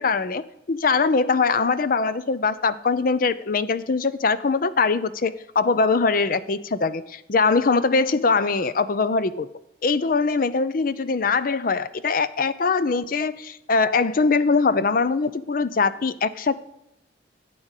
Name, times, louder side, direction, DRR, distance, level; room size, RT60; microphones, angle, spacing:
voice 1, 0.0-9.5 9.8-16.6, left 4 dB, 50° left, 15 dB, 0.5 m, -22 dB
12.5 x 8.7 x 6.5 m, 0.83 s
head